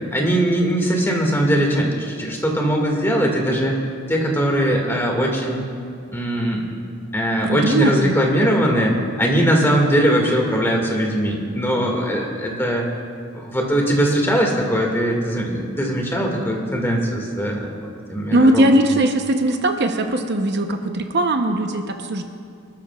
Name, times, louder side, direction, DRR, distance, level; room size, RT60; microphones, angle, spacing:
voice 1, 0.1-3.8 4.1-5.6 6.1-6.7 7.1-12.9 13.3-19.0, equal, 10° left, 0 dB, 1.9 m, -20 dB
voice 2, 7.4-8.2 18.3-22.2, right 1 dB, 55° right, 5 dB, 0.8 m, -19 dB
25.5 x 13.0 x 2.4 m, 2.3 s
head